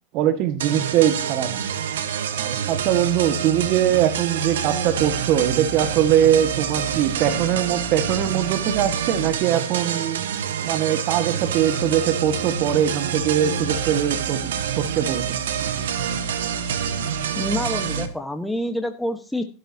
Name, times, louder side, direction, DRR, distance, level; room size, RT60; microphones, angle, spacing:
voice 1, 0.1-1.5 2.3-10.2 10.6-15.4, right 10 dB, 55° right, 10 dB, 1.7 m, -22 dB
sound 1, 0.6-18.1, right 7 dB, 85° right, 1.4 m, -27 dB
voice 2, 17.4-19.4, left 1 dB, 5° left, 5 dB, 1.3 m, -27 dB
14.0 x 12.5 x 2.8 m, 0.34 s
hypercardioid pair, 105°, 0 cm